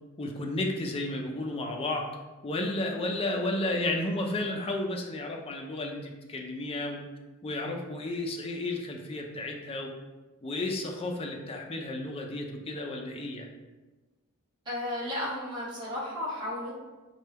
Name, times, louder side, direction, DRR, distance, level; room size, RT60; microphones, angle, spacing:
voice 1, 0.2-2.1 2.4-7.0 7.4-9.9 10.4-13.5, left 2 dB, 25° left, 1 dB, 0.4 m, -32 dB
voice 2, 14.6-16.8, left 1 dB, 20° right, -9 dB, 1.3 m, -34 dB
4.2 x 2.2 x 3.3 m, 1.2 s
head